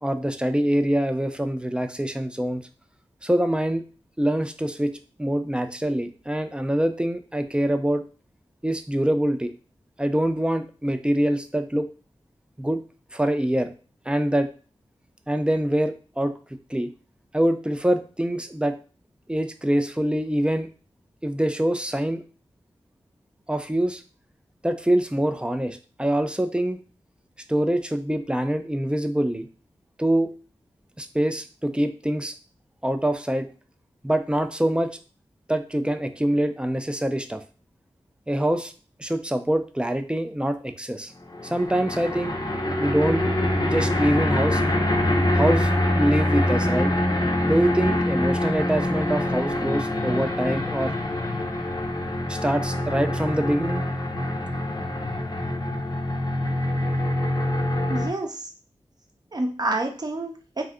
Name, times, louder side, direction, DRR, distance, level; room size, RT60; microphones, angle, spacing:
voice 1, 0.0-2.6 3.2-3.8 4.2-4.9 5.2-8.0 8.6-9.5 10.0-11.9 12.6-12.8 13.1-13.7 14.1-14.5 15.3-16.3 16.7-16.9 17.3-18.7 19.3-20.7 21.2-22.2 23.5-24.0 24.6-26.8 27.5-29.5 30.0-30.3 31.0-32.3 32.8-33.5 34.0-34.9 35.5-37.4 38.3-38.7 39.0-41.1 41.4-42.4 42.8-43.2 43.6-44.6 45.3-45.7 46.0-46.9 47.4-50.9 52.3-53.8, right 1 dB, 10° right, 8 dB, 0.4 m, -24 dB
sound 1, 41.3-58.1, left 1 dB, 35° left, 0.6 m, -25 dB
voice 2, 57.9-58.5 59.3-60.7, right 2 dB, 40° right, 2 dB, 0.7 m, -28 dB
2.6 x 2.4 x 3.5 m, 0.36 s
cardioid pair, 50°, 11 cm